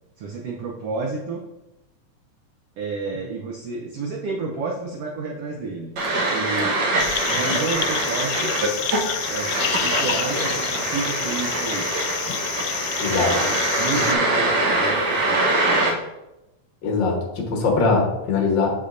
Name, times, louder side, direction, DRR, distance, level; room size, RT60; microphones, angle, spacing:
voice 1, 0.2-1.4 2.8-5.9 6.3-6.8 7.3-8.5 9.3-12.1 13.3-16.0, right 4 dB, 80° right, 0 dB, 1.3 m, -30 dB
sound 1, 6.0-15.9, right 2 dB, 60° right, 1.2 m, -23 dB
sound 2, 7.0-14.2, left 9 dB, 80° left, 2.0 m, -28 dB
voice 2, 13.0-13.3 16.8-18.7, left 4 dB, 55° left, 1 dB, 1.4 m, -21 dB
7.8 x 6.6 x 2.6 m, 0.95 s
omnidirectional pair, 3.6 m